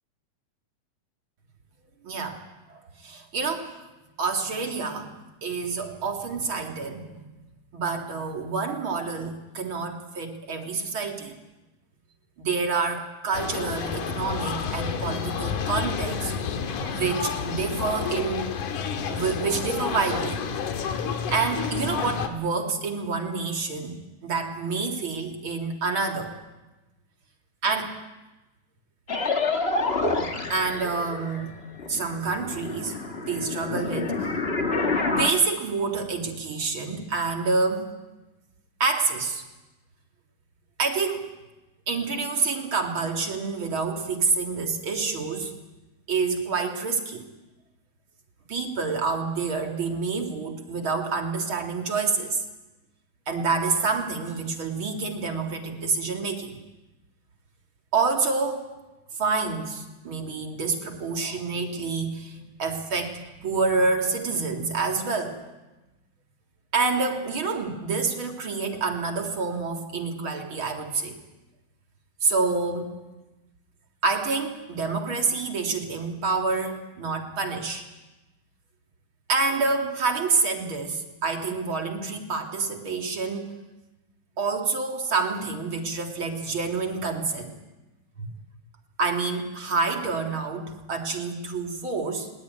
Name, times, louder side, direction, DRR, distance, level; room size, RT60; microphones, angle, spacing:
voice 1, 2.0-2.4 2.7-3.7 4.2-5.1 5.4-7.3 7.7-11.3 12.4-16.3 16.9-18.5 19.1-20.4 21.3-26.3 27.6-28.0 30.5-31.5 31.9-33.0 33.2-34.3 35.1-37.9 38.8-39.4 40.8-41.3 41.9-45.6 46.1-47.2 48.5-52.4 53.3-56.6 57.9-58.7 59.2-65.4 66.7-71.2 72.2-73.0 74.0-77.8 79.3-83.5 84.4-87.5 88.2-88.3 89.0-92.3, right 4 dB, 40° right, 4 dB, 2.5 m, -27 dB
sound 1, 13.3-22.3, left 6 dB, 65° left, 3.0 m, -30 dB
sound 2, 29.1-31.5 31.8-35.3, left 3 dB, 40° left, 0.9 m, -28 dB
20.5 x 19.0 x 9.4 m, 1.1 s
omnidirectional pair, 4.0 m